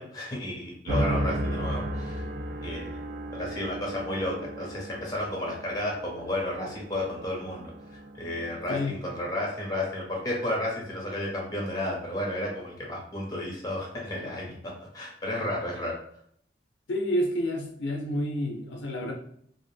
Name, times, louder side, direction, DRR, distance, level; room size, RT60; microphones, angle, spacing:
voice 1, 0.0-2.2 2.6-3.0 3.3-15.9, left 1 dB, 20° left, -2 dB, 0.7 m, -32 dB
sound 1, 0.9-9.3, right 1 dB, 60° right, 0.4 m, -34 dB
voice 2, 8.7-9.0 16.9-19.1, equal, 90° left, 1 dB, 0.5 m, -29 dB
2.5 x 2.0 x 3.2 m, 0.64 s
head